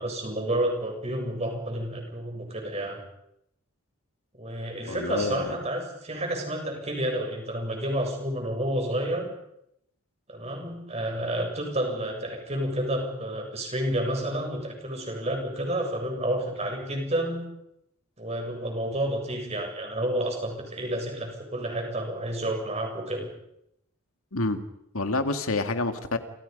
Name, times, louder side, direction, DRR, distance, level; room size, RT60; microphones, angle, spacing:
voice 1, 0.0-3.0 4.4-9.3 10.3-17.5 18.2-23.3, right 1 dB, 30° right, 2 dB, 7.5 m, -30 dB
voice 2, 4.9-5.5 24.3-24.6 24.9-26.2, left 3 dB, 75° left, 7 dB, 2.2 m, -27 dB
29.0 x 27.5 x 5.5 m, 0.79 s
head